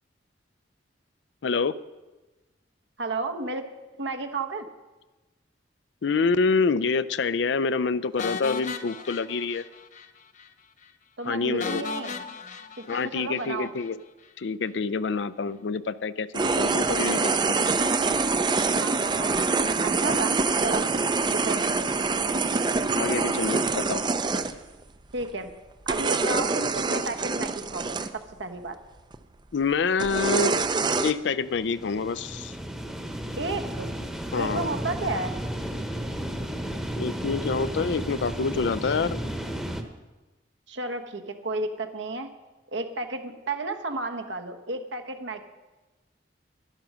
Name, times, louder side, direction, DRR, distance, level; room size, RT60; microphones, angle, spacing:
voice 1, 1.4-1.8 6.0-9.6 11.2-11.8 12.9-14.0 14.4-17.4 22.9-24.0 29.5-30.5 31.0-32.5 34.3-34.7 36.9-39.2, left 4 dB, 65° left, 16 dB, 0.5 m, -27 dB
voice 2, 3.0-3.6 3.9-4.7 11.2-12.2 12.8-13.7 18.8-20.4 20.6-20.8 21.3-21.7 25.1-25.5 25.9-28.8 33.3-33.9 34.4-35.3 40.7-42.3 42.7-45.4, right 3 dB, 75° right, 6 dB, 1.2 m, -32 dB
sound 1, 8.2-10.1 10.4-10.5 10.8-10.9 11.6-13.9, left 5 dB, 40° left, 0.8 m, -37 dB
sound 2, 16.3-24.5 25.2-25.5 25.9-28.1 29.1-29.2 30.0-31.1, right 4 dB, 25° right, 0.5 m, -25 dB
sound 3, 31.2-39.8, equal, 5° right, 1.0 m, -33 dB
11.5 x 10.5 x 6.2 m, 1.1 s
head